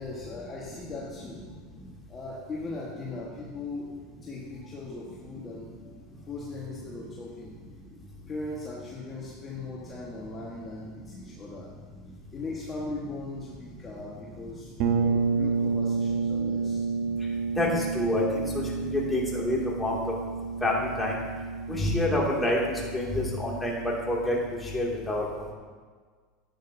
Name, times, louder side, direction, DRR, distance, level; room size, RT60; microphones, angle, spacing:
voice 1, 0.0-1.4 2.1-3.9 4.2-7.5 8.3-11.7 12.3-16.8, left 2 dB, 25° left, -5 dB, 1.5 m, -39 dB
sound 1, 14.8-24.5, right 5 dB, 55° right, 1.1 m, -30 dB
voice 2, 17.6-20.0 20.6-21.2 21.7-25.5, left 1 dB, 10° left, -4 dB, 2.5 m, -28 dB
11.5 x 8.9 x 2.8 m, 1.5 s
supercardioid pair, 115°, 0 cm